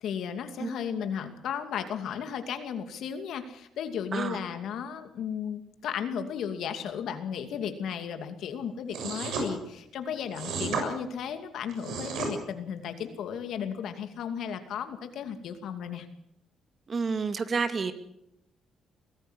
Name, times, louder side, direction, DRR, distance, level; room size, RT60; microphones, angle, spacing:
voice 1, 0.0-16.1, left 8 dB, 75° left, 8 dB, 2.6 m, -35 dB
sound 1, 8.9-9.5 10.3-10.9 11.7-12.3, right 4 dB, 80° right, 6.9 m, -32 dB
voice 2, 16.9-17.9, right 5 dB, 40° right, 9 dB, 2.2 m, -29 dB
22.5 x 15.5 x 8.1 m, 0.78 s
cardioid pair, 90°, 0 cm